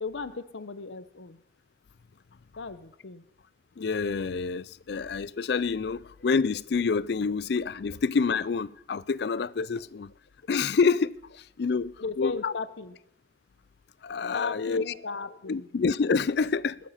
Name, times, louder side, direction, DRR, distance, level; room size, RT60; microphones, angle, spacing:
voice 1, 0.0-1.4 2.6-3.2 7.9-8.0 11.7-13.0 14.3-15.8, left 4 dB, 80° left, 0.8 m, -37 dB
voice 2, 3.8-10.1 10.5-12.5 14.0-14.8 15.5-16.8, left 5 dB, 60° left, 0.4 m, -27 dB
20.0 x 7.4 x 5.7 m
head